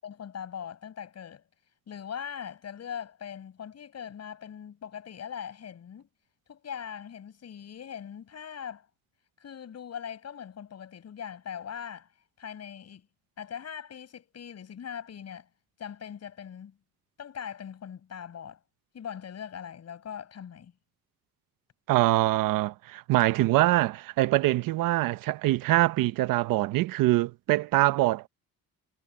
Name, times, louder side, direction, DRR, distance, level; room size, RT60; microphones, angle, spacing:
voice 1, 0.0-1.4 1.9-6.1 6.5-8.9 9.4-12.1 12.4-13.1 13.4-15.5 15.8-16.8 17.2-18.6 18.9-20.7, left 8 dB, 50° left, 6.1 m, -41 dB
voice 2, 21.9-28.3, right 17 dB, 80° right, 1.0 m, -24 dB
cardioid pair, 90°, 33 cm